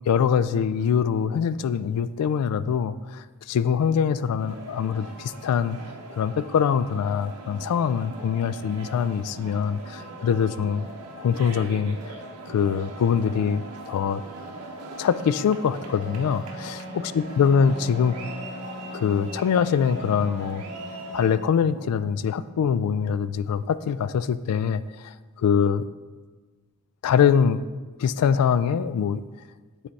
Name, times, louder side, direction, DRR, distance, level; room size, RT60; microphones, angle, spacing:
voice 1, 0.1-5.8 6.2-10.9 11.2-12.0 12.5-14.2 15.0-16.8 17.1-18.2 18.9-20.6 21.1-25.8 27.0-27.6 28.0-29.2, left 7 dB, 85° left, 16 dB, 0.3 m, -23 dB
sound 1, 4.4-21.4, right 2 dB, 80° right, 0.7 m, -40 dB
Wind instrument woodwind instrument, 15.9-22.3, left 1 dB, 50° left, 0.7 m, -41 dB
8.6 x 3.3 x 4.1 m, 1.3 s
head